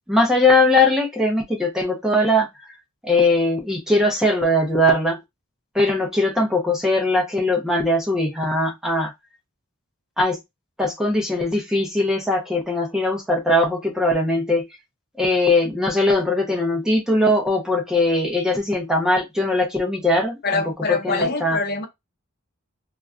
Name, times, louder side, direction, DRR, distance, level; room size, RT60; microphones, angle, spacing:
voice 1, 0.1-2.5 3.0-5.2 5.7-9.1 10.2-10.4 10.8-14.7 15.2-20.6 20.9-21.6, left 1 dB, 5° right, 0.5 m, -20 dB
voice 2, 20.4-21.9, left 3 dB, 50° left, 0.6 m, -24 dB
2.3 x 2.1 x 3.5 m
head